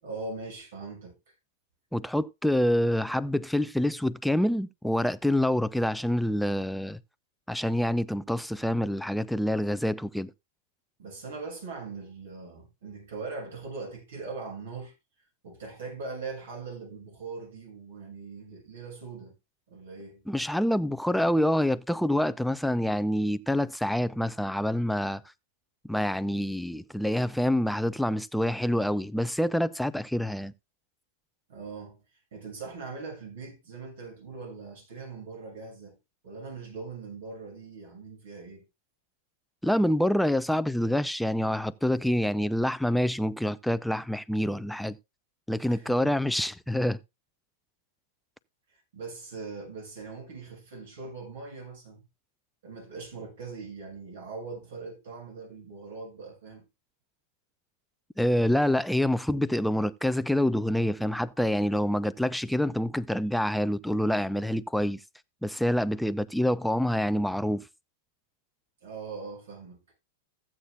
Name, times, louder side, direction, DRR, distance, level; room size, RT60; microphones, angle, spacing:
voice 1, 0.0-1.2 11.0-14.9 15.4-19.4 19.7-20.2 31.5-32.0 32.3-36.0 36.2-38.6 45.7-46.1 48.9-52.0 52.6-56.7 68.8-69.8, right 4 dB, 65° right, 7.1 m, -41 dB
voice 2, 1.9-7.0 7.5-10.3 20.3-25.2 25.9-30.5 39.6-45.0 45.5-47.0 58.2-65.0 65.4-67.7, left 1 dB, ahead, 0.5 m, -26 dB
14.5 x 8.7 x 2.3 m
figure-of-eight pair, 100°, 0 cm